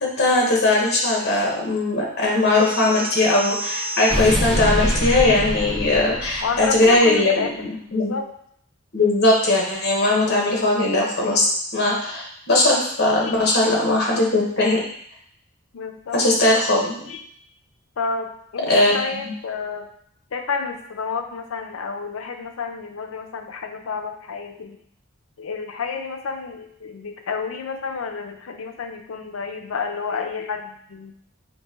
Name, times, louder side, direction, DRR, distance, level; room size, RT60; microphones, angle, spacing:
voice 1, 0.0-8.1 8.9-11.4 11.7-14.8 16.1-17.0 18.7-19.3, left 2 dB, 50° left, -2 dB, 1.1 m, -19 dB
sound 1, 2.5-6.8, equal, ahead, 1.7 m, -26 dB
voice 2, 6.4-8.3 13.2-13.3 15.7-16.2 17.1-17.2 18.0-19.9 20.3-24.8 25.4-31.1, left 5 dB, 85° left, 5 dB, 0.5 m, -30 dB
4.0 x 2.7 x 3.6 m, 0.66 s
head